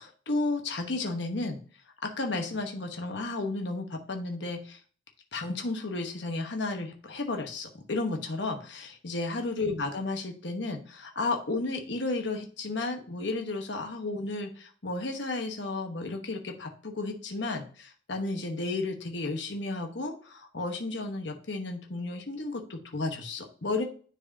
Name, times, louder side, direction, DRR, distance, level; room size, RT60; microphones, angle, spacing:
voice 1, 0.0-1.6 2.0-4.8 5.3-23.8, left 2 dB, 65° left, 3 dB, 1.1 m, -33 dB
10.0 x 4.7 x 2.7 m, 0.42 s
head